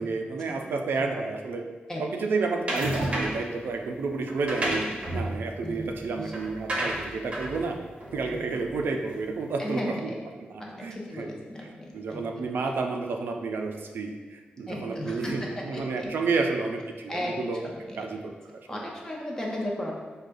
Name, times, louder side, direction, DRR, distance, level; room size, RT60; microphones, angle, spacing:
voice 1, 0.0-1.6 2.0-4.9 5.1-7.8 8.1-10.1 10.8-11.3 11.6-17.6 18.0-18.3 18.7-18.9, right 4 dB, 85° right, 3 dB, 0.4 m, -30 dB
sound 1, 2.7-3.5 4.3-9.0, right 1 dB, 35° right, 0.7 m, -32 dB
voice 2, 5.6-6.3 9.6-10.1 10.6-12.7 14.7-16.1 17.1-18.2 18.7-19.9, left 1 dB, 20° left, -2 dB, 0.5 m, -36 dB
4.8 x 2.2 x 2.5 m, 1.4 s
wide cardioid pair, 145°, 3 cm